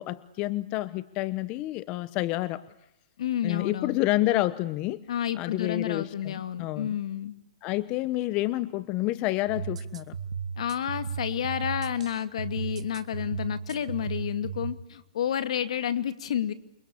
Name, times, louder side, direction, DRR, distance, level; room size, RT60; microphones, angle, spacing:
voice 1, 0.0-2.6 3.4-5.0 5.3-6.9 7.6-10.2, left 17 dB, 30° left, 16 dB, 1.0 m, -29 dB
voice 2, 3.2-4.0 5.1-7.3 10.6-16.5, left 9 dB, 70° left, 11 dB, 2.5 m, -30 dB
sound 1, 9.5-14.7, right 6 dB, 85° right, 2.3 m, -35 dB
29.0 x 24.0 x 8.6 m, 0.85 s
hypercardioid pair, 150°, 3 cm